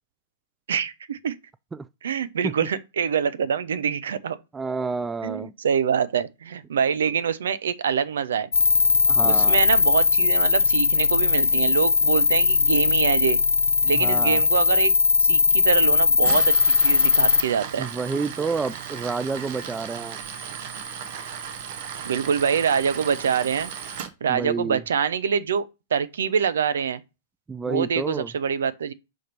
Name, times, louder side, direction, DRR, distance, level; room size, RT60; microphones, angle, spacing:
voice 1, 0.7-1.4 2.0-4.4 5.2-8.5 9.3-13.4 13.8-14.9 15.2-17.9 22.0-23.7 24.2-27.0 27.7-28.9, right 7 dB, 75° right, 0.6 m, -25 dB
voice 2, 4.5-5.5 9.1-9.6 13.9-14.4 17.8-20.2 24.3-24.8 27.5-28.3, right 4 dB, 15° right, 0.3 m, -29 dB
sound 1, 8.5-17.4, left 5 dB, 85° left, 0.5 m, -19 dB
Tools, 16.1-24.1, right 8 dB, 55° right, 0.9 m, -36 dB
6.3 x 3.5 x 4.4 m
hypercardioid pair, 105°, 0 cm